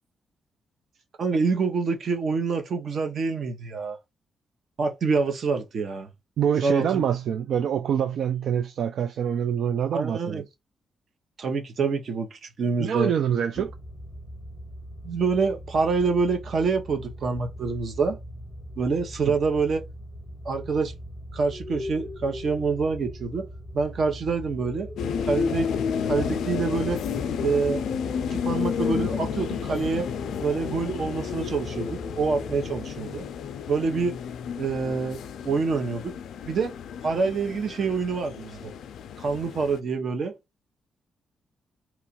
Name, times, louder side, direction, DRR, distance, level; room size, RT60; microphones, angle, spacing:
voice 1, 1.2-4.0 4.8-6.1 6.6-7.0 9.9-10.4 11.4-13.1 13.6-13.7 15.0-18.2 18.8-19.8 20.4-20.9 21.3-23.5 23.7-24.9 25.3-25.7 26.1-27.0 27.4-27.9 28.2-30.1 30.4-33.2 33.7-34.2 34.6-36.1 36.5-36.7 37.0-38.7 39.2-40.3, right 4 dB, 50° right, 0.8 m, -26 dB
voice 2, 6.4-10.4 12.8-13.7, right 8 dB, 65° right, 0.3 m, -25 dB
sound 1, 13.6-32.9, equal, 20° left, 0.6 m, -40 dB
sound 2, 25.0-39.8, left 7 dB, 85° left, 0.3 m, -31 dB
2.9 x 2.4 x 4.1 m
wide cardioid pair, 150°, 0 cm